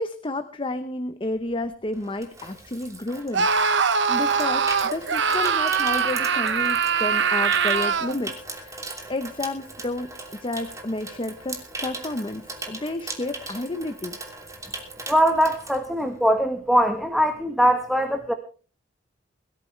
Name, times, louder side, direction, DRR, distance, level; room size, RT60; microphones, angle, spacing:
voice 1, 0.0-10.1 10.4-14.2, left 2 dB, 25° left, 9 dB, 0.9 m, -31 dB
Water tap faucet / Sink (filling or washing), 1.4-16.5 16.7-17.0, right 2 dB, 15° right, 2.9 m, -39 dB
Screaming, 3.3-8.2, right 6 dB, 65° right, 0.9 m, -22 dB
voice 2, 15.1-18.3, equal, ahead, 5 dB, 1.3 m, -21 dB
22.0 x 13.5 x 3.3 m, 0.38 s
head